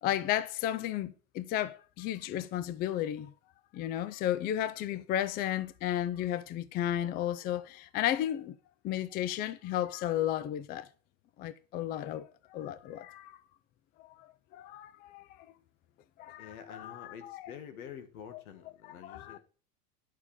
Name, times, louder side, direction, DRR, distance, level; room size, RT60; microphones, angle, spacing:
voice 1, 0.0-3.3 3.7-8.5 8.8-10.9 11.4-13.4 14.2-14.3 14.5-15.3 16.2-17.4 19.0-19.4, left 12 dB, 25° left, 0.4 m, -33 dB
voice 2, 16.4-19.4, left 8 dB, 90° left, 2.0 m, -47 dB
9.9 x 6.6 x 5.0 m
supercardioid pair, 135°, 42 cm